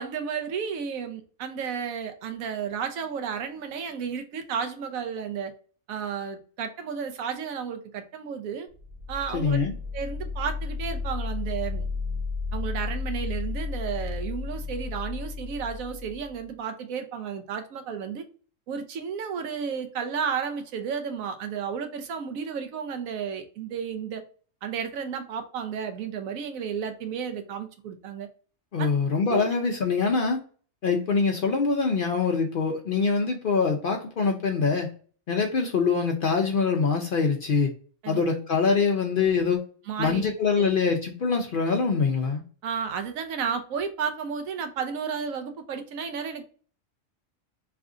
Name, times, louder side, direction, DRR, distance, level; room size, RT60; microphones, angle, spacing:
voice 1, 0.0-5.5 5.9-8.7 9.1-9.6 9.9-11.9 12.5-18.2 18.7-24.2 24.6-28.3 28.8-28.9 29.3-29.5 38.0-38.2 39.9-40.3 40.6-40.7 42.6-46.4, right 6 dB, 85° right, 1.1 m, -32 dB
sound 1, 8.7-16.5, left 4 dB, 55° right, 1.5 m, -33 dB
voice 2, 9.3-9.7 28.7-30.4 30.8-34.9 35.3-37.7 38.1-39.6 40.0-42.4, left 5 dB, 60° left, 0.5 m, -24 dB
3.3 x 2.5 x 3.6 m
omnidirectional pair, 1.4 m